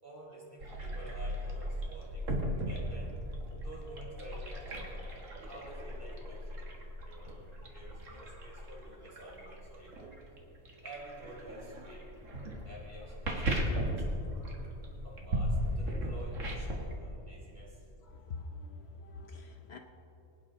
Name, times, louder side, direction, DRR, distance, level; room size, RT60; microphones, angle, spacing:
voice 1, 0.0-2.3 2.6-3.1 3.6-5.0 5.4-6.7 7.0-7.5 7.7-10.1 10.8-12.1 12.7-14.2 15.0-17.8, right 1 dB, 45° right, -5 dB, 3.8 m, -50 dB
sound 1, 0.6-16.9, equal, 75° right, 2.0 m, -37 dB
voice 2, 18.1-19.8, left 3 dB, 60° left, 5 dB, 0.9 m, -45 dB
24.0 x 9.4 x 3.8 m, 2.9 s
omnidirectional pair, 1.3 m